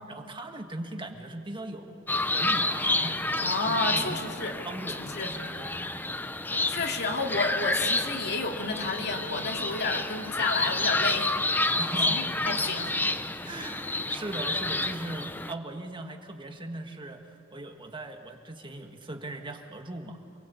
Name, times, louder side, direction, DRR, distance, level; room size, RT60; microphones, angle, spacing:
voice 1, 0.0-4.2 4.7-5.9 11.8-12.2 13.3-20.2, right 2 dB, 25° right, 4 dB, 1.7 m, -39 dB
sound 1, 2.1-15.5, left 2 dB, 10° left, 0.7 m, -29 dB
voice 2, 3.4-4.5 5.1-5.3 6.4-11.8 12.1-13.0, left 3 dB, 55° left, 3 dB, 2.3 m, -31 dB
28.0 x 21.5 x 8.4 m, 2.3 s
head